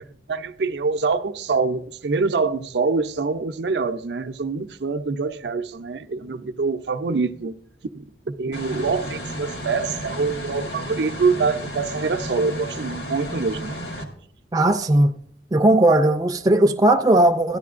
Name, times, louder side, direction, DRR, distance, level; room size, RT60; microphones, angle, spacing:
voice 1, 0.3-7.6 7.9-13.8, right 4 dB, 70° right, 0.5 m, -25 dB
sound 1, 8.5-14.0, equal, 65° left, 1.4 m, -33 dB
voice 2, 14.5-15.2 15.5-17.6, right 1 dB, 20° right, 0.4 m, -17 dB
13.0 x 10.0 x 2.4 m
head